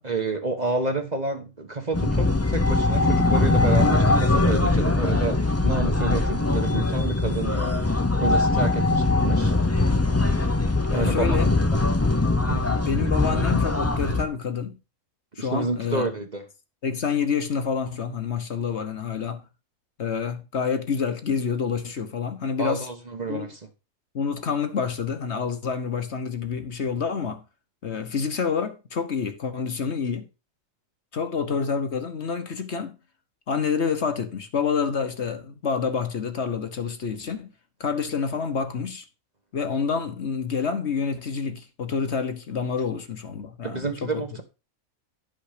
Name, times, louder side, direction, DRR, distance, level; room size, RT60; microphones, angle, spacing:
voice 1, 0.0-7.8 8.2-9.5 10.9-11.4 12.5-12.7 15.4-16.4 22.6-23.6 43.6-44.4, right 3 dB, 30° right, 1.2 m, -29 dB
sound 1, 1.9-14.2, left 2 dB, 15° left, 0.6 m, -21 dB
voice 2, 10.1-10.4 10.9-12.0 12.6-14.8 15.4-16.1 16.8-19.4 20.0-22.9 23.3-23.5 24.1-27.4 27.8-30.3 31.1-33.0 33.5-37.5 37.8-39.0 39.5-44.2, left 6 dB, 50° left, 1.3 m, -28 dB
11.5 x 5.7 x 5.1 m
omnidirectional pair, 1.5 m